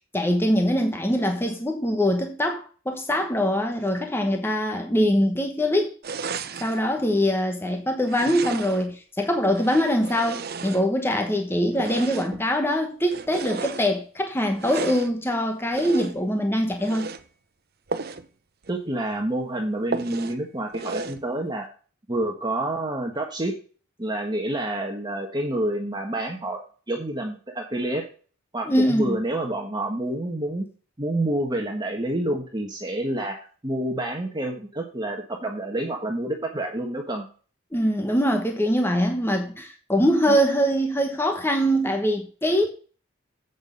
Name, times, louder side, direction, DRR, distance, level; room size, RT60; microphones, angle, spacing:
voice 1, 0.1-5.9 6.6-17.1 28.7-29.2 37.7-42.7, equal, 10° left, 1.1 m, -23 dB
sound 1, 6.0-6.8 8.0-8.9 9.5-11.2 11.7-12.5 13.0-13.9 14.5-15.1 15.7-16.3 16.7-17.2 17.9-18.3 18.6-18.7 19.1-19.2 19.9-20.4 20.7-21.2, right 4 dB, 50° right, 0.8 m, -34 dB
voice 2, 18.7-21.7 22.1-23.5 24.0-28.1 28.5-30.7 31.0-37.3 40.3-40.4, right 1 dB, 20° right, 1.4 m, -28 dB
8.1 x 6.5 x 5.3 m
head